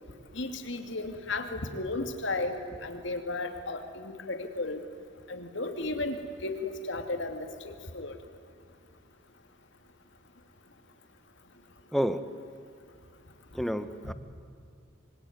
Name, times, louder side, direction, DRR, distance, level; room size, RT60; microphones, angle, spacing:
voice 1, 0.3-4.8 5.3-8.2, left 2 dB, 60° left, 6 dB, 2.6 m, -34 dB
voice 2, 11.9-12.3 13.5-14.1, equal, ahead, 11 dB, 1.0 m, -30 dB
25.5 x 24.0 x 9.7 m, 2.5 s
head